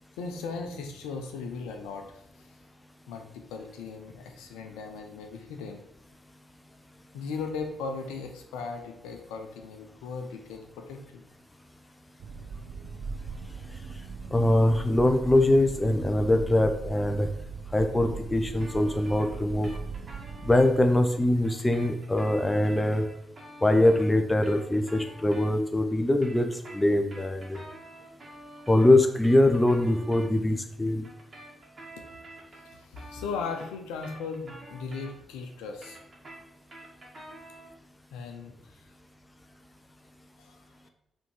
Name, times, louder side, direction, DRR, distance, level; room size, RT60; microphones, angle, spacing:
voice 1, 0.2-2.5 3.1-5.8 7.1-11.2 32.6-36.0 38.1-38.8 40.4-40.5 40.8-40.9, left 4 dB, 75° left, 4 dB, 0.9 m, -37 dB
sound 1, 12.2-20.7, right 5 dB, 60° right, 0.5 m, -39 dB
voice 2, 14.3-17.3 17.7-19.7 20.4-23.0 23.6-26.5 26.7-27.6 28.7-31.1, left 1 dB, 15° left, 6 dB, 1.0 m, -23 dB
sound 2, 18.6-20.7 21.4-25.8 26.1-30.3 31.0-35.4 35.7-37.8, right 1 dB, 40° right, 1.9 m, -48 dB
5.2 x 3.8 x 4.8 m, 0.82 s
hypercardioid pair, 40°, 0 cm